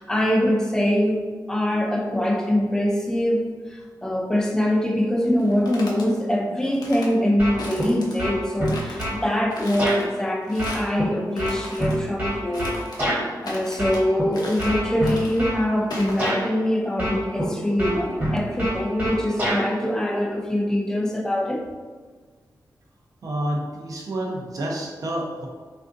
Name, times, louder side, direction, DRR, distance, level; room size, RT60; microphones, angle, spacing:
voice 1, 0.0-12.8 13.4-21.7, left 1 dB, 10° left, 0 dB, 0.3 m, -23 dB
sound 1, 5.4-6.1 6.6-7.1 7.6-8.3 8.7-9.1 9.5-10.0 10.5-10.9 11.3-12.0 12.5-13.1 13.4-14.0 14.3-14.8 15.0-15.4 15.9-16.3, left 1 dB, 70° left, 0.6 m, -37 dB
sound 2, 7.4-7.9 8.2-9.2 9.8-10.0 10.6-13.2 13.8-14.2 14.6-15.6 16.2-16.4 17.0-17.5 17.8-19.6, equal, 25° right, 1.0 m, -26 dB
voice 2, 23.2-25.5, right 1 dB, 55° right, 0 dB, 0.5 m, -29 dB
3.5 x 2.5 x 2.5 m, 1.5 s
wide cardioid pair, 170°, 7 cm